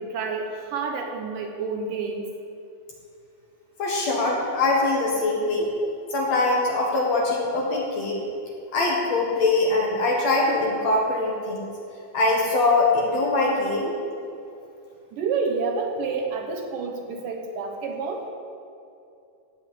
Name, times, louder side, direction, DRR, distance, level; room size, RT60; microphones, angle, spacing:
voice 1, 0.0-2.3 15.1-18.2, right 4 dB, 70° right, 3 dB, 2.5 m, -29 dB
voice 2, 3.8-5.7 6.1-8.2 8.7-11.7 12.1-13.9, left 2 dB, 55° left, -2 dB, 2.2 m, -22 dB
16.0 x 5.5 x 8.1 m, 2.7 s
omnidirectional pair, 4.2 m